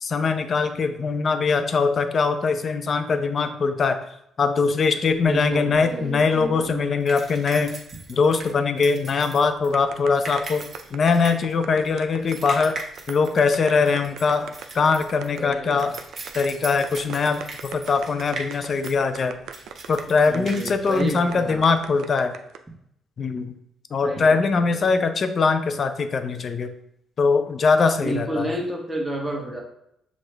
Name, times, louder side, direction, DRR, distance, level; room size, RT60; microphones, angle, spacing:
voice 1, 0.0-4.0 4.4-7.8 8.1-12.8 13.1-15.9 16.3-19.4 19.9-22.4 23.2-23.5 23.9-26.7 27.2-28.5, left 4 dB, 50° left, 9 dB, 0.4 m, -22 dB
sound 1, 5.1-21.9, right 3 dB, 40° right, 1.0 m, -39 dB
voice 2, 5.2-6.1 15.4-15.9 20.3-21.7 24.0-24.9 28.0-29.6, right 1 dB, 5° right, -2 dB, 1.2 m, -30 dB
sound 2, 9.7-22.6, right 8 dB, 80° right, 0.3 m, -38 dB
6.2 x 2.4 x 3.3 m, 0.77 s
cardioid pair, 90°, 0 cm